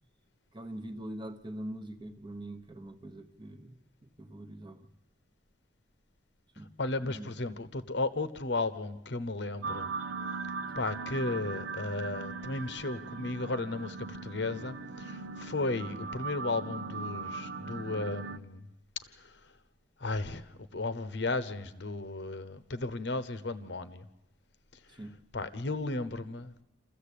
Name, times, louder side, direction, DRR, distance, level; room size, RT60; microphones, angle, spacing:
voice 1, 0.5-4.9 6.6-6.7 7.0-7.4 10.7-10.9 14.5-14.6 24.9-25.2, right 1 dB, 25° right, 8 dB, 1.0 m, -43 dB
voice 2, 6.8-9.9 10.8-18.6 19.2-19.4 20.0-24.0 25.3-26.6, left 2 dB, 60° left, 13 dB, 0.9 m, -34 dB
sound 1, 9.6-18.4, right 4 dB, 90° right, 0.8 m, -39 dB
27.0 x 14.0 x 8.4 m, 0.98 s
head